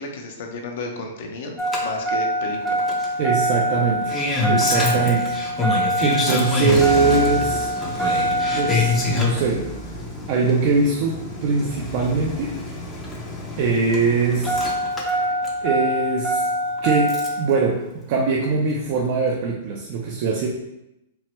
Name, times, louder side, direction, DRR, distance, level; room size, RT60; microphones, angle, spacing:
voice 1, 0.0-2.8, left 2 dB, 60° left, 2 dB, 0.5 m, -33 dB
Engine starting, 1.6-17.5 18.8-18.9, equal, 10° left, 0.5 m, -24 dB
voice 2, 3.2-4.2 4.5-5.7 6.0-7.7 8.0-9.7 10.3-12.6 13.6-15.3 15.6-16.5 16.8-20.5, right 4 dB, 45° right, -1 dB, 0.4 m, -22 dB
3.0 x 2.1 x 2.9 m, 0.90 s
hypercardioid pair, 150°, 0 cm